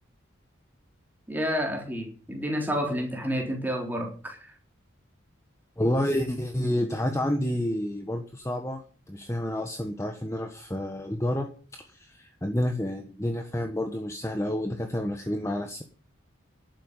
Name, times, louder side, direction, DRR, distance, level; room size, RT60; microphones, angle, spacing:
voice 1, 1.3-4.4, equal, 10° right, 3.9 m, -29 dB
voice 2, 5.8-11.5 11.9-15.8, left 1 dB, 15° left, 1.3 m, -29 dB
12.0 x 9.1 x 8.2 m
head